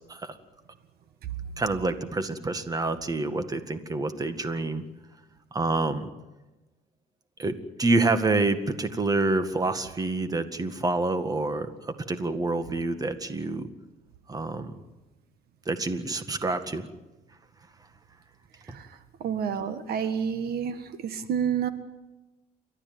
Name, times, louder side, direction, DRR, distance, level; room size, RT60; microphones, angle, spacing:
voice 1, 1.6-4.8 5.5-6.1 7.4-13.7 14.3-14.7 15.7-16.9 18.7-18.8, right 3 dB, 20° right, 9 dB, 1.9 m, -27 dB
voice 2, 18.7-21.7, right 7 dB, 65° right, 11 dB, 1.6 m, -30 dB
29.0 x 13.0 x 9.5 m, 1.1 s
cardioid pair, 110°, 17 cm